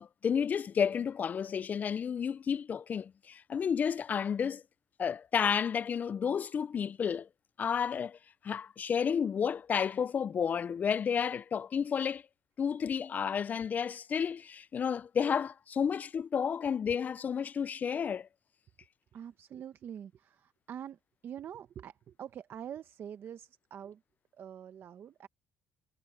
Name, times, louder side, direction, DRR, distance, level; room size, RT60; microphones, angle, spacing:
voice 1, 0.0-4.6 5.0-7.3 7.6-8.2 8.4-12.2 12.6-18.3, left 7 dB, 30° left, 0.3 m, -31 dB
voice 2, 19.1-24.0 24.3-25.3, right 9 dB, 40° right, 0.8 m, -45 dB
cardioid pair, 135°, 6 cm